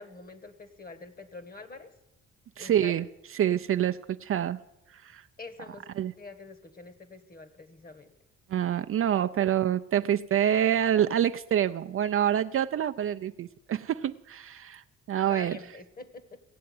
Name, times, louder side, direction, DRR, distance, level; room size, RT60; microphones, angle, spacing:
voice 1, 0.0-1.9 2.6-3.0 5.4-5.9 6.2-8.1 9.0-9.1 15.3-16.4, left 3 dB, 30° left, 12 dB, 1.4 m, -45 dB
voice 2, 2.6-3.1 3.3-4.6 4.9-5.2 6.0-6.1 8.5-15.6, right 10 dB, 45° right, 9 dB, 0.4 m, -27 dB
17.0 x 7.6 x 9.3 m, 0.94 s
cardioid pair, 90°, 30 cm